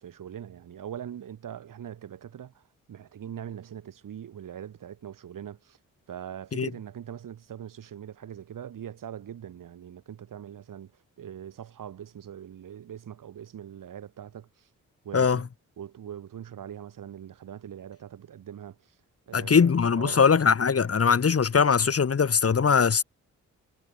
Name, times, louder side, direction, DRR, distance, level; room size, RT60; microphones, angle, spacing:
voice 1, 0.0-2.6 2.9-5.8 6.1-10.9 11.2-14.7 15.0-15.4 15.8-18.9 19.3-20.3, right 9 dB, 80° right, 6.1 m, -42 dB
voice 2, 19.3-23.0, left 6 dB, 45° left, 1.7 m, -21 dB
cardioid pair, 55°, 32 cm